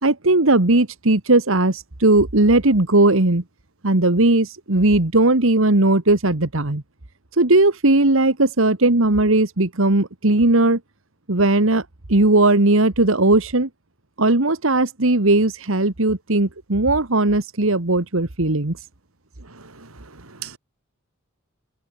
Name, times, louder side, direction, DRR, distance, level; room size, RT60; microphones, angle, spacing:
voice 1, 0.0-3.4 3.8-6.8 7.3-10.8 11.3-13.7 14.2-18.8, right 2 dB, 65° right, 1.8 m, -18 dB
voice 2, 19.4-20.6, right 8 dB, 85° right, 2.9 m, -40 dB
head